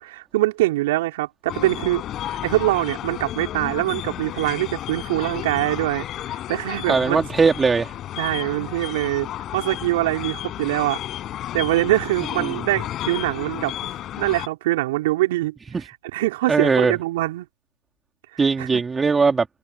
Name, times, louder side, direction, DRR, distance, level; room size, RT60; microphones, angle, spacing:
voice 1, 0.0-7.2 8.2-11.0 11.5-13.7 14.2-15.5 15.8-17.5 18.3-18.8, right 17 dB, 35° right, 4.0 m, -24 dB
sound 1, 1.5-14.5, left 12 dB, 15° left, 5.0 m, -32 dB
voice 2, 6.9-7.9 12.4-12.6 15.7-15.8 16.5-16.9 18.4-19.5, right 4 dB, 5° right, 2.9 m, -19 dB
hypercardioid pair, 150°, 0 cm